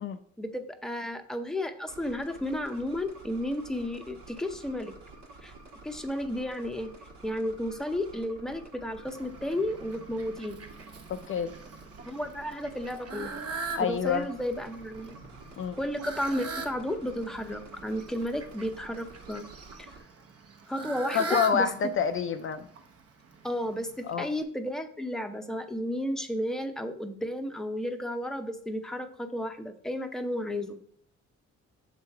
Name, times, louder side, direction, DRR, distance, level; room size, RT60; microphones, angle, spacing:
voice 1, 0.4-4.9 5.4-5.5 5.8-6.9 7.2-10.5 12.1-13.3 13.8-15.2 15.8-19.4 20.7-21.7 23.4-30.8, left 1 dB, ahead, 6 dB, 0.6 m, -33 dB
sound 1, 1.9-20.0, right 2 dB, 80° right, 1.3 m, -50 dB
Fowl, 9.0-24.4, right 4 dB, 50° right, 0.9 m, -42 dB
voice 2, 13.8-14.2 15.6-15.8 21.1-22.7 24.1-24.3, left 7 dB, 45° left, 9 dB, 0.4 m, -27 dB
6.7 x 3.1 x 4.6 m, 0.62 s
cardioid pair, 90°, 30 cm